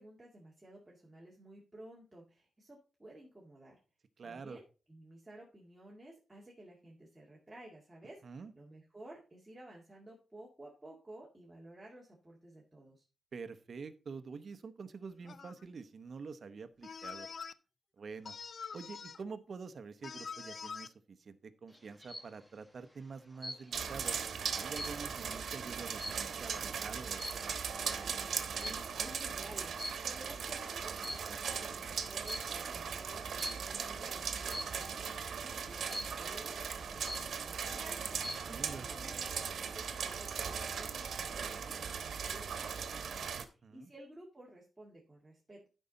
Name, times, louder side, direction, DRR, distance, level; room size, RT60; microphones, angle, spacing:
voice 1, 0.0-3.8 4.2-13.0 28.6-38.0 38.4-45.7, right 1 dB, 10° right, -4 dB, 2.1 m, -54 dB
voice 2, 4.2-4.6 8.2-8.5 13.3-17.3 18.0-18.4 18.7-24.2 24.5-27.6 38.5-38.9 43.3-43.9, right 5 dB, 55° right, 10 dB, 0.9 m, -47 dB
sound 1, 15.3-15.6 16.8-17.5 18.3-19.2 20.0-20.9, left 6 dB, 55° left, 0.4 m, -45 dB
sound 2, 21.7-22.4 23.4-23.9 24.3-26.6 27.1-27.6 28.6-29.0 29.8-30.4 30.9-31.6 32.3-32.6 33.4-33.8 34.5-34.9 35.9-36.4 36.8-36.9 37.1-37.7 38.0-38.6, equal, 5° left, 1.2 m, -44 dB
sound 3, 23.7-43.4, right 6 dB, 90° right, 1.1 m, -39 dB
12.5 x 5.5 x 4.0 m, 0.34 s
wide cardioid pair, 130°, 0 cm